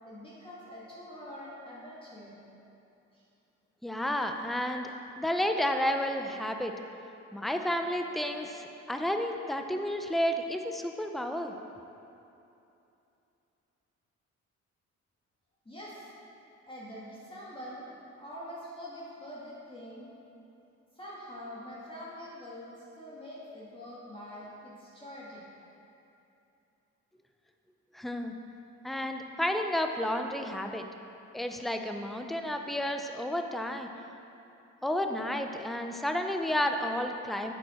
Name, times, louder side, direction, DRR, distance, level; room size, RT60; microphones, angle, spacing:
voice 1, 0.0-2.4 3.1-3.2 15.7-16.0 16.7-20.1 21.0-25.4, equal, 15° left, -8 dB, 1.9 m, -45 dB
voice 2, 3.8-6.7 7.3-11.5 27.9-28.3 28.8-30.8 31.3-33.9 34.8-37.5, left 1 dB, ahead, 5 dB, 0.6 m, -31 dB
8.5 x 7.7 x 4.4 m, 2.8 s
cardioid pair, 90°, 30 cm